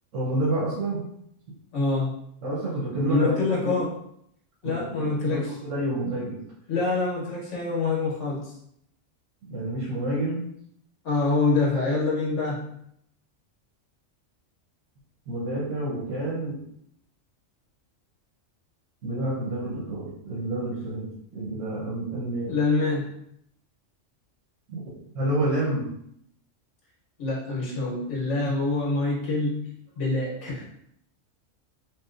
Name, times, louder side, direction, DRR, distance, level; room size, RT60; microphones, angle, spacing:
voice 1, 0.1-1.0 2.4-3.8 4.6-6.4 9.5-10.4 15.3-16.6 19.0-22.6 24.7-24.8 25.1-25.9, right 1 dB, 85° right, -7 dB, 1.2 m, -29 dB
voice 2, 1.7-2.1 3.1-3.9 4.6-5.5 6.7-8.5 11.0-12.8 22.5-23.1 27.2-30.6, left 3 dB, 65° left, -4 dB, 1.3 m, -26 dB
3.0 x 2.9 x 2.4 m, 0.71 s
omnidirectional pair, 1.3 m